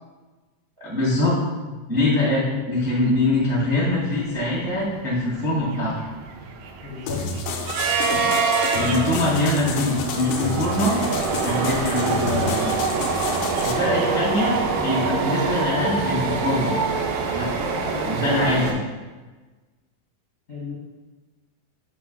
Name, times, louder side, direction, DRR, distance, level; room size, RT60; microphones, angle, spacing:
voice 1, 0.8-1.4 1.9-5.9 8.7-11.0 11.4-12.7 13.6-16.7 17.3-17.5 18.0-18.8, left 1 dB, 50° right, -7 dB, 0.3 m, -23 dB
sound 1, 3.3-3.4 3.7-3.9 4.3-18.7, right 4 dB, 80° right, 2.1 m, -25 dB
voice 2, 6.8-7.2 17.7-18.1 20.5-20.7, left 3 dB, 60° left, -9 dB, 0.9 m, -34 dB
sound 2, 7.1-13.7, left 4 dB, 80° left, 1.9 m, -30 dB
6.9 x 2.9 x 5.5 m, 1.3 s
omnidirectional pair, 4.2 m